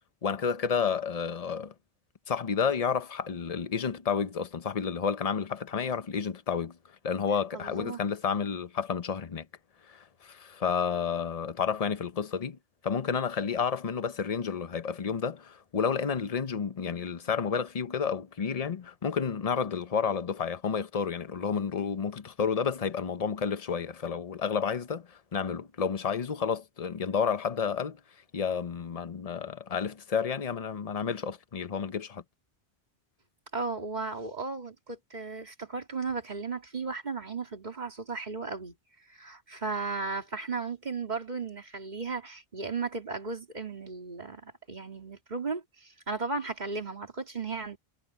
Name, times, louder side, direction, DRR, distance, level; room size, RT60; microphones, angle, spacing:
voice 1, 0.2-1.7 2.3-6.8 7.0-9.5 9.9-12.6 12.8-28.0 28.3-32.2, left 6 dB, 40° left, 0.9 m, -30 dB
voice 2, 7.5-8.0 33.5-38.7 39.1-47.8, right 4 dB, 45° right, 2.5 m, -35 dB
omnidirectional pair, 1.1 m